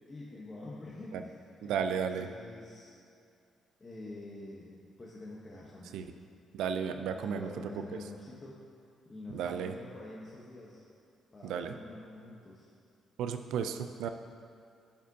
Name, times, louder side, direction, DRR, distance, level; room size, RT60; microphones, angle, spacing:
voice 1, 0.1-2.9 3.8-6.0 7.1-8.6 9.1-10.8 11.3-12.7, left 2 dB, 30° left, -6 dB, 0.9 m, -47 dB
voice 2, 1.6-2.3 5.9-6.1 6.5-7.5 7.7-8.0 9.3-9.8 11.4-11.7 13.2-14.1, right 7 dB, 85° right, 7 dB, 0.4 m, -34 dB
9.9 x 5.0 x 2.7 m, 2.4 s
cardioid pair, 90°, 0 cm